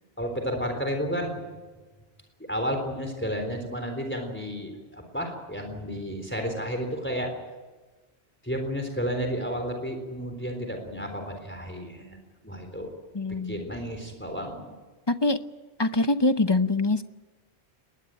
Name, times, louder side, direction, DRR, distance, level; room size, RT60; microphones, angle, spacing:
voice 1, 0.2-1.4 2.5-7.3 8.4-12.2 12.4-12.9 13.3-14.7, equal, 10° left, 5 dB, 3.8 m, -32 dB
voice 2, 13.1-13.7 15.1-15.4 15.8-17.0, left 2 dB, 25° left, 10 dB, 0.8 m, -24 dB
21.0 x 20.0 x 9.1 m, 1.3 s
omnidirectional pair, 1.1 m